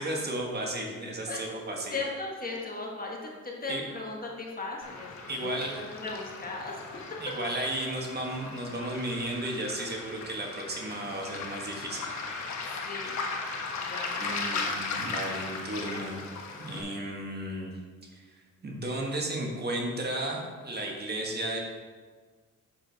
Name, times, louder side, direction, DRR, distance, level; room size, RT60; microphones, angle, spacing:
voice 1, 0.0-1.9 3.7-3.8 5.3-5.8 7.2-12.1 12.3-12.7 14.2-16.2 16.6-17.7 18.1-21.6, right 1 dB, 35° right, 0 dB, 1.6 m, -34 dB
voice 2, 1.9-6.8 9.8-9.9 12.8-13.2 13.8-14.8, left 3 dB, 30° left, -1 dB, 1.6 m, -38 dB
Waves surf, 4.8-16.8, left 4 dB, 65° left, 1.3 m, -37 dB
7.6 x 6.8 x 4.1 m, 1.5 s
cardioid pair, 90°, 30 cm